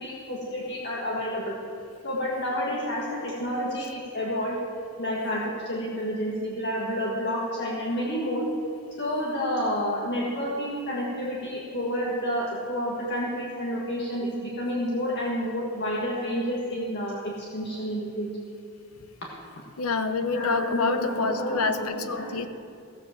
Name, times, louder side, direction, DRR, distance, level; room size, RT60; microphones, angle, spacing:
voice 1, 0.0-1.5 2.0-4.6 5.0-8.5 9.0-18.3 20.3-22.5, equal, 50° left, -4 dB, 1.8 m, -29 dB
voice 2, 19.8-22.5, left 4 dB, 75° left, 9 dB, 0.8 m, -27 dB
15.0 x 7.7 x 7.3 m, 2.6 s
head